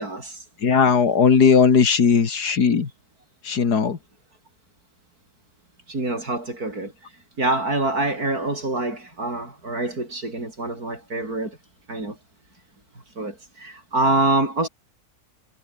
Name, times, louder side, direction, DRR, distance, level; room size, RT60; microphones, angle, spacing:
voice 1, 0.0-0.4 5.9-6.9 7.4-11.6 11.9-12.2 13.2-14.7, right 2 dB, 70° right, 7.2 m, -25 dB
voice 2, 0.6-2.9 3.4-4.0, left 6 dB, 85° left, 2.6 m, -17 dB
omnidirectional pair, 1.7 m